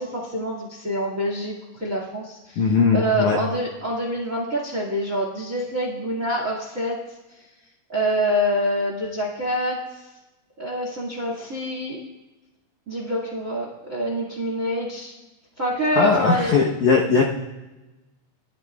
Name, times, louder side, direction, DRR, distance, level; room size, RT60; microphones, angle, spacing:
voice 1, 0.0-2.7 2.9-7.0 7.9-9.8 10.6-12.0 12.9-15.1 15.6-16.5, equal, 40° right, 0 dB, 1.1 m, -26 dB
voice 2, 2.6-3.4 16.0-17.2, left 5 dB, 80° left, -1 dB, 1.7 m, -19 dB
22.5 x 13.0 x 2.4 m, 1.1 s
omnidirectional pair, 5.1 m